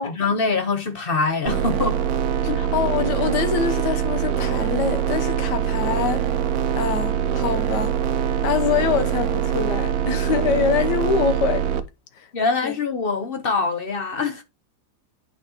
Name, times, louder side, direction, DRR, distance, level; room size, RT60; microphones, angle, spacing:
voice 1, 0.0-2.0 2.5-2.7 12.3-14.4, left 4 dB, 50° left, 0.6 m, -24 dB
sound 1, 1.5-11.8, right 9 dB, 65° right, 1.0 m, -23 dB
voice 2, 2.4-6.2 6.7-8.0 8.4-11.7 12.2-12.3 12.6-12.7, left 7 dB, 65° left, 1.4 m, -24 dB
8.8 x 5.1 x 2.9 m
omnidirectional pair, 2.1 m